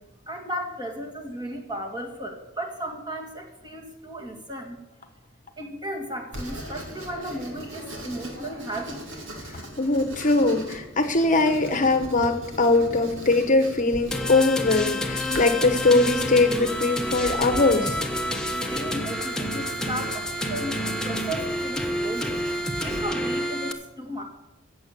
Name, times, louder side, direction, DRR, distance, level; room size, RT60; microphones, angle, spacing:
voice 1, 0.3-4.8 5.6-9.0 18.7-22.3 22.8-24.2, right 1 dB, 20° right, 2 dB, 2.3 m, -35 dB
Writing, 6.3-23.0, equal, 70° right, 3.0 m, -40 dB
voice 2, 9.5-18.0, left 2 dB, 40° left, 7 dB, 1.1 m, -21 dB
sound 1, 14.1-23.7, equal, 5° left, 1.2 m, -29 dB
15.5 x 8.1 x 6.9 m, 0.92 s
head